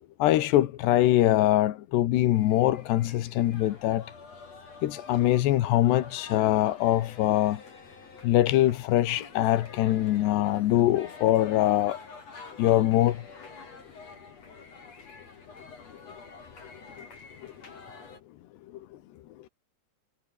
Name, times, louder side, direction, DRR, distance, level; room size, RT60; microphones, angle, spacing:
voice 1, 0.2-4.1 4.8-7.6 8.2-12.0 12.6-13.2, left 14 dB, 90° left, 3.5 m, -23 dB
sound 1, 2.3-18.2, left 4 dB, 40° left, 6.2 m, -48 dB
omnidirectional pair, 4.7 m